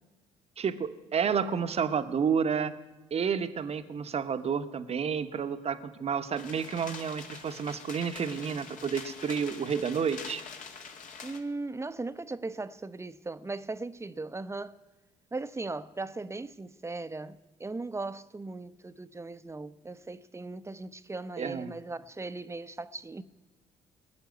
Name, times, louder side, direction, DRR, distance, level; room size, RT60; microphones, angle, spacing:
voice 1, 0.6-2.7 3.1-10.4 21.4-21.7, right 6 dB, 40° right, 1.1 m, -30 dB
sound 1, 6.4-11.4, left 5 dB, 55° left, 2.1 m, -45 dB
voice 2, 11.2-14.8 15.3-23.2, right 3 dB, 15° right, 0.9 m, -38 dB
20.5 x 7.0 x 9.4 m
hypercardioid pair, 50°, 16 cm